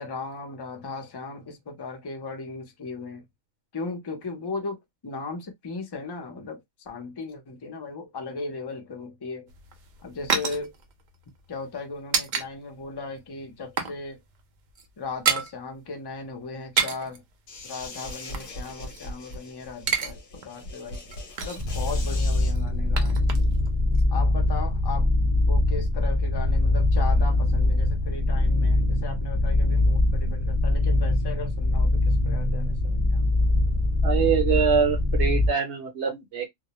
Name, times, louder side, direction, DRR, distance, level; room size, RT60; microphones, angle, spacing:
voice 1, 0.0-3.2 3.7-9.5 10.0-10.7 11.5-14.2 15.0-17.2 17.6-21.0 21.4-23.2 24.1-25.1 25.5-33.2, left 4 dB, 35° left, 0.4 m, -37 dB
sound 1, 9.5-12.5 12.8-12.9 13.3-14.0 14.3-14.4 14.7-15.5 16.5-17.2 17.9-19.4 19.7-20.1 20.4-20.5 20.9-21.7 22.4-23.7 23.9-24.0, right 6 dB, 80° right, 0.4 m, -29 dB
sound 2, 17.5-22.5, left 1 dB, 50° left, 0.8 m, -40 dB
sound 3, 21.6-35.5, left 2 dB, 35° right, 0.8 m, -23 dB
voice 2, 34.0-36.5, right 6 dB, 65° right, 0.8 m, -24 dB
2.2 x 2.1 x 2.9 m
omnidirectional pair, 1.4 m